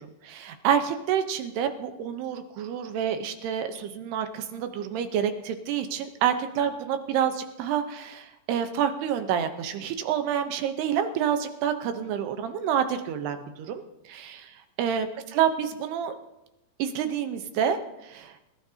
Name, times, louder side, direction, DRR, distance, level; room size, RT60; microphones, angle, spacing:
voice 1, 0.0-16.2 16.8-18.4, right 8 dB, 90° right, 7 dB, 3.1 m, -28 dB
25.0 x 13.0 x 2.8 m, 0.92 s
omnidirectional pair, 4.5 m